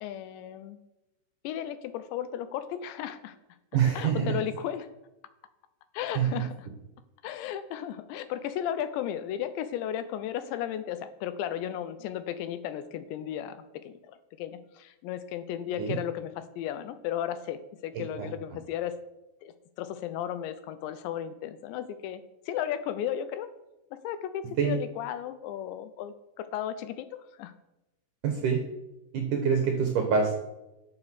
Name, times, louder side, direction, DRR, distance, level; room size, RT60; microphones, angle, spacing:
voice 1, 0.0-0.8 1.4-3.4 4.0-4.9 5.9-6.7 7.2-19.0 19.4-22.2 22.5-23.5 24.0-27.5, left 10 dB, 80° left, 12 dB, 2.9 m, -35 dB
voice 2, 3.7-4.4 6.2-6.4 15.8-16.0 18.2-18.3 24.6-24.8 28.2-28.6 29.1-30.3, right 6 dB, 70° right, 3 dB, 2.0 m, -25 dB
12.0 x 6.9 x 6.3 m, 0.97 s
omnidirectional pair, 5.3 m